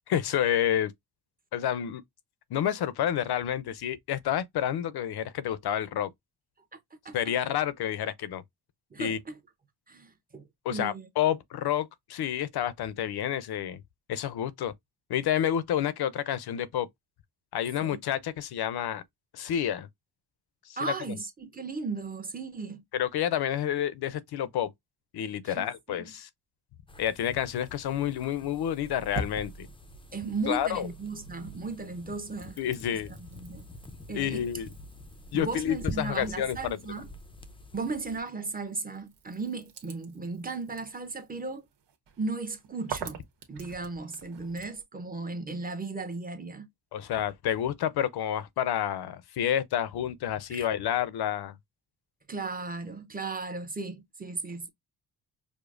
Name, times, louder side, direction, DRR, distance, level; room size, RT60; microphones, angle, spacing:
voice 1, 0.1-0.9 1.5-2.0 2.5-6.1 7.1-8.4 9.0-9.2 10.6-13.8 14.1-14.7 15.1-16.9 17.5-19.0 19.3-19.9 20.9-21.0 22.9-24.7 25.1-26.3 27.0-29.7 30.5-30.9 32.6-33.1 34.1-34.7 35.3-36.8 46.9-51.6, left 10 dB, 70° left, 0.6 m, -29 dB
voice 2, 8.9-9.4 9.9-11.1 17.8-18.0 20.8-22.8 25.4-26.1 30.1-32.6 32.9-33.7 34.1-34.4 35.3-37.1 37.7-41.6 42.2-43.2 43.5-46.7 50.5-50.7 52.3-54.7, right 3 dB, 20° right, 0.8 m, -36 dB
sound 1, 26.9-38.2, left 2 dB, 15° left, 0.4 m, -45 dB
sound 2, 28.6-31.2 31.6-44.8, right 3 dB, 85° right, 1.1 m, -46 dB
5.0 x 2.0 x 2.4 m
cardioid pair, 120°, 41 cm